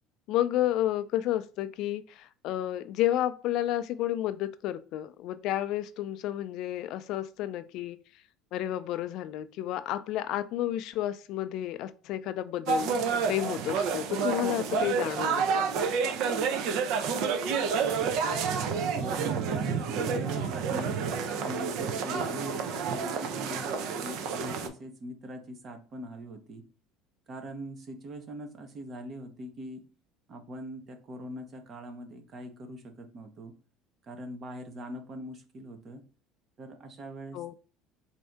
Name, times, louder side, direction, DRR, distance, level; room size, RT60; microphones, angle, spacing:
voice 1, 0.3-8.0 8.5-12.9 13.3-15.7 37.3-37.5, left 13 dB, 60° left, 13 dB, 0.3 m, -31 dB
sound 1, 12.7-24.7, right 6 dB, 65° right, 0.6 m, -29 dB
voice 2, 17.8-21.0 21.4-26.6 27.3-29.9 30.3-33.5 34.0-36.1 36.6-37.5, right 1 dB, 35° right, 6 dB, 0.9 m, -42 dB
4.3 x 2.7 x 3.4 m, 0.38 s
cardioid pair, 135°, 0 cm